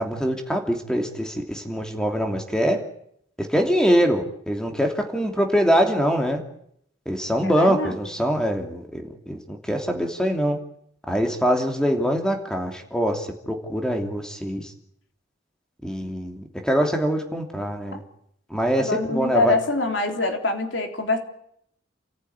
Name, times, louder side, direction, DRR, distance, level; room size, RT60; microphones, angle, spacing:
voice 1, 0.0-2.8 3.4-6.4 7.1-10.6 11.1-14.7 15.8-18.0 18.5-19.6, equal, 5° left, 3 dB, 2.9 m, -23 dB
voice 2, 7.4-8.0 18.8-21.2, left 2 dB, 70° left, 4 dB, 3.6 m, -24 dB
29.0 x 14.5 x 9.7 m, 0.72 s
head